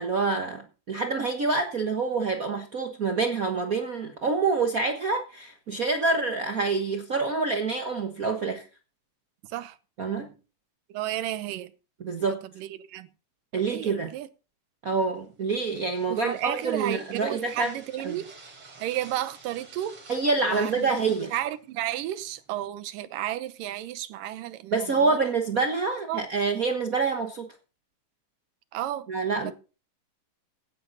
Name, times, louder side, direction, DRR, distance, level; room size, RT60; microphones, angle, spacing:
voice 1, 0.0-8.7 10.0-10.3 12.0-12.4 13.5-14.1 14.8-17.7 18.0-18.2 20.1-21.3 24.7-27.5 29.1-29.5, right 4 dB, 60° right, 0.8 m, -27 dB
voice 2, 9.4-9.8 10.9-11.7 12.3-13.1 13.6-14.3 16.1-18.3 18.8-20.0 20.4-20.9 21.3-25.2 26.1-26.2 28.7-29.1 29.4-29.5, right 13 dB, 90° right, 2.6 m, -33 dB
sound 1, 15.1-22.7, right 3 dB, 45° right, 4.3 m, -51 dB
16.5 x 11.0 x 4.0 m
omnidirectional pair, 3.7 m